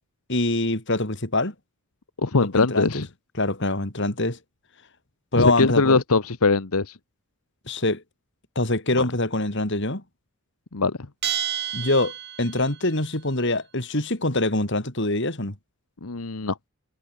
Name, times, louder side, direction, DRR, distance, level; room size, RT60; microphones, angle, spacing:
voice 1, 0.3-1.5 2.4-3.0 3.4-4.4 5.3-6.0 7.7-8.0 8.6-10.0 11.7-15.6, left 2 dB, 55° left, 3.7 m, -24 dB
voice 2, 2.2-3.1 5.4-6.9 9.0-9.1 10.7-11.0 16.0-16.5, left 3 dB, 80° left, 1.2 m, -21 dB
Bell, 11.2-12.8, right 10 dB, 50° right, 2.7 m, -30 dB
head